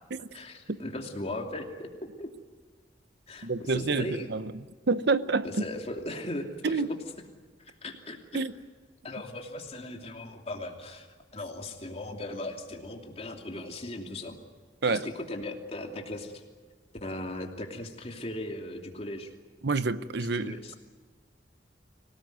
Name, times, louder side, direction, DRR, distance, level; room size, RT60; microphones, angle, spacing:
voice 1, 0.3-1.9 2.2-2.3 3.3-4.3 5.4-6.8 7.6-8.2 9.0-14.4 14.9-16.4 17.0-19.3 20.3-20.8, left 1 dB, 35° left, 2.8 m, -38 dB
voice 2, 3.4-4.5 4.9-5.6 6.6-6.9 8.3-8.5 14.8-15.1 19.6-20.7, right 4 dB, 65° right, 0.8 m, -28 dB
25.0 x 18.5 x 9.5 m
head